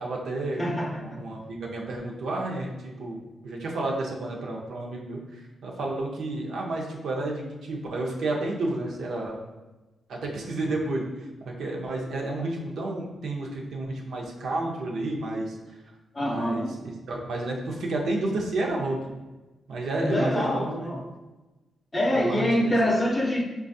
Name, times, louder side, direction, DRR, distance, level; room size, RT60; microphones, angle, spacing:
voice 1, 0.0-0.7 1.0-9.4 10.1-11.1 11.4-15.5 16.2-19.2 19.7-20.9 22.1-22.7, right 2 dB, 80° right, -1 dB, 0.6 m, -31 dB
voice 2, 0.6-1.2 16.1-16.7 20.0-21.0 21.9-23.4, equal, 15° left, 0 dB, 0.5 m, -25 dB
4.6 x 2.3 x 2.6 m, 1.1 s
wide cardioid pair, 135°, 0 cm